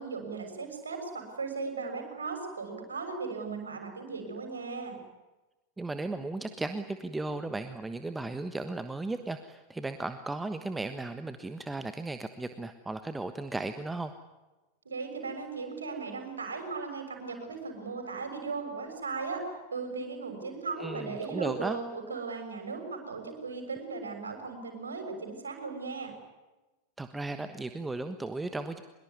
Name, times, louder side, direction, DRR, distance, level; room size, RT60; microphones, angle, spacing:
voice 1, 0.0-5.0 14.8-19.4 19.7-26.1, right 4 dB, 75° right, 5 dB, 6.5 m, -37 dB
voice 2, 5.8-14.1 20.8-21.8 27.0-28.8, right 2 dB, 10° right, 9 dB, 1.3 m, -35 dB
24.0 x 22.5 x 9.7 m, 1.1 s
figure-of-eight pair, 90°, 0 cm